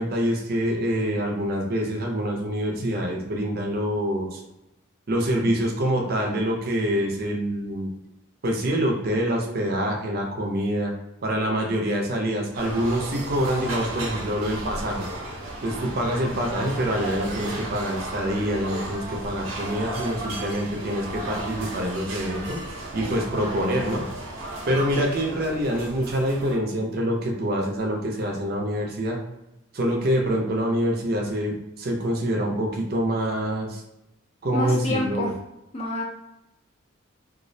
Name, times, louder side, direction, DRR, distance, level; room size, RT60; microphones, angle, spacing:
voice 1, 0.0-4.4 5.1-7.9 8.4-10.9 11.2-15.1 15.6-22.6 22.9-24.0 24.7-29.2 29.7-33.8 34.4-35.3, equal, 50° right, 0 dB, 0.5 m, -26 dB
sound 1, 12.5-26.6, right 1 dB, 90° right, 0.6 m, -34 dB
voice 2, 34.5-35.3 35.7-36.0, left 2 dB, 30° left, -1 dB, 0.4 m, -27 dB
2.4 x 2.0 x 2.6 m, 0.90 s
head